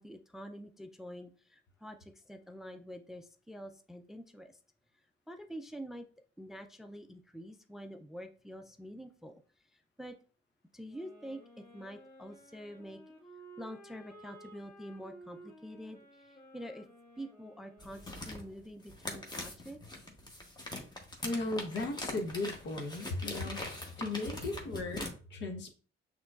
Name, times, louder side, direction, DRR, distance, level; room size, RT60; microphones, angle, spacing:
voice 1, 0.0-4.6 5.3-6.1 6.4-9.4 9.7-10.1 10.7-13.0 13.6-16.9 17.2-19.8, equal, ahead, 7 dB, 0.4 m, -47 dB
sound 1, 10.8-18.7, right 1 dB, 45° left, 2.0 m, -55 dB
sound 2, 17.8-25.1, left 1 dB, 20° left, 1.0 m, -42 dB
voice 2, 21.2-23.7 24.0-25.7, left 2 dB, 65° left, 5 dB, 0.9 m, -36 dB
6.1 x 3.0 x 2.4 m, 0.39 s
cardioid pair, 90°, 20 cm